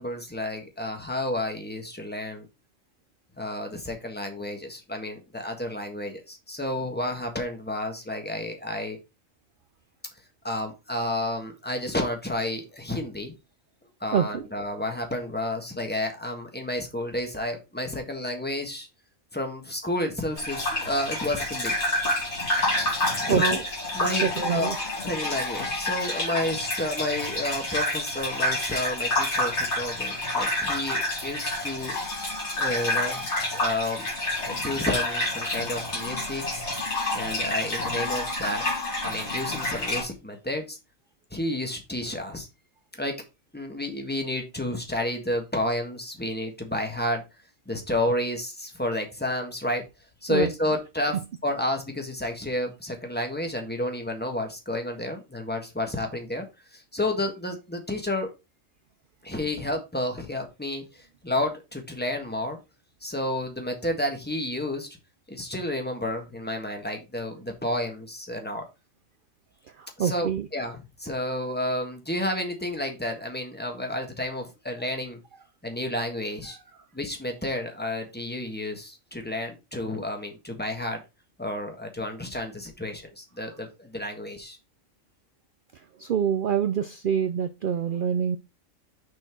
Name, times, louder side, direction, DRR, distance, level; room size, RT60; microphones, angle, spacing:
voice 1, 0.0-2.5 3.4-9.0 10.4-13.3 14.0-18.9 19.3-21.7 23.1-23.6 23.9-24.7 25.0-32.0 32.6-33.3 33.5-34.1 34.3-36.6 37.1-38.6 39.0-40.8 41.3-42.5 43.0-43.2 43.5-47.2 47.7-49.8 50.2-56.5 56.7-58.3 59.2-62.6 63.0-64.9 65.3-68.6 70.0-75.2 75.6-76.6 76.9-81.0 81.4-84.6, left 1 dB, 10° left, 3 dB, 1.4 m, -31 dB
voice 2, 14.1-14.5 23.3-23.6 24.2-24.8 50.3-50.5 69.7-70.5 85.7-88.4, right 8 dB, 65° right, 11 dB, 0.5 m, -26 dB
Gurgling / Bathtub (filling or washing), 20.4-40.0, left 1 dB, 55° left, 2.9 m, -28 dB
6.4 x 4.4 x 4.5 m, 0.26 s
omnidirectional pair, 1.4 m